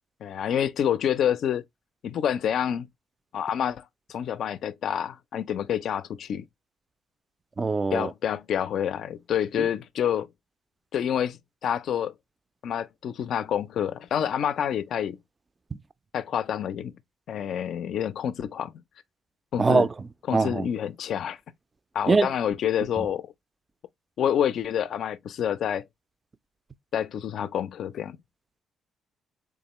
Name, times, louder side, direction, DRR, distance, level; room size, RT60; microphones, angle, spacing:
voice 1, 0.2-1.6 2.0-2.9 3.3-3.8 4.1-6.4 7.9-10.3 10.9-12.1 12.6-15.2 16.1-16.9 17.3-18.8 19.5-19.9 20.3-21.4 21.9-23.3 24.2-25.9 26.9-28.2, left 9 dB, 70° left, 0.3 m, -28 dB
voice 2, 7.6-8.1 9.6-9.7 19.6-19.9 20.3-20.7 22.1-22.3, right 3 dB, 30° right, 0.3 m, -22 dB
3.6 x 3.5 x 2.9 m
cardioid pair, 90°, 0 cm